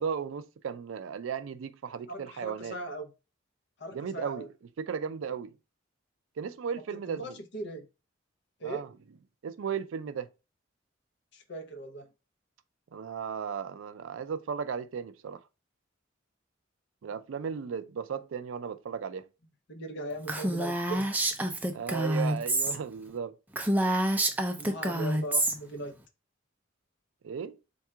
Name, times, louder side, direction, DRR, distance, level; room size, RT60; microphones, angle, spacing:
voice 1, 0.0-2.8 3.9-4.5 4.8-5.5 6.4-7.4 8.6-8.9 9.4-10.3 12.9-15.4 17.0-19.3 21.7-23.4 27.2-27.6, right 6 dB, 75° right, 0.4 m, -35 dB
voice 2, 2.1-3.1 3.8-4.5 6.8-7.9 8.6-8.9 11.3-12.1 17.3-17.5 19.7-21.1 24.5-25.9, right 1 dB, 60° left, 0.7 m, -39 dB
Female speech woman speaking, 20.3-22.8 23.1-23.2 23.5-25.5, right 1 dB, 10° right, 0.4 m, -28 dB
3.6 x 2.3 x 4.4 m
head